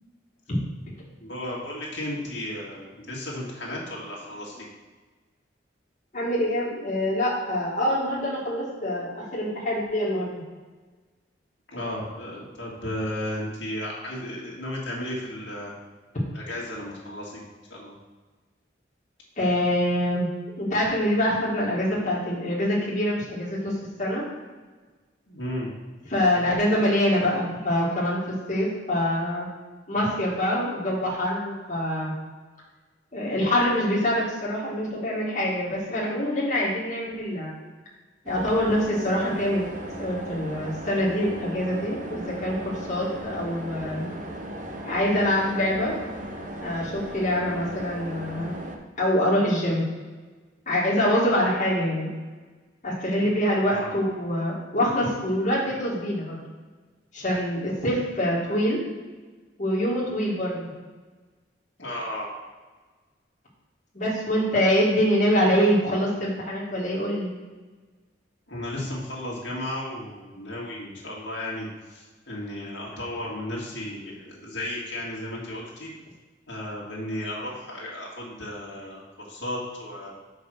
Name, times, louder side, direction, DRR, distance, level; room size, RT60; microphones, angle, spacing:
voice 1, 1.2-4.7 11.7-15.7 16.3-17.4 17.7-18.0 25.3-25.7 53.2-53.3 53.7-53.9 61.8-62.3 68.5-75.9 76.5-80.1, left 1 dB, 75° left, -4 dB, 1.9 m, -34 dB
voice 2, 6.1-10.4 19.4-20.3 20.6-24.2 26.1-29.5 29.9-32.1 33.1-37.5 38.3-39.7 39.9-44.1 44.8-45.9 46.6-48.6 49.0-49.9 50.7-52.1 52.8-56.4 57.1-58.8 59.6-60.7 63.9-67.3, equal, 40° left, -6 dB, 1.8 m, -25 dB
sound 1, 38.3-48.8, equal, 45° right, 0.7 m, -37 dB
5.3 x 4.9 x 6.2 m, 1.3 s
head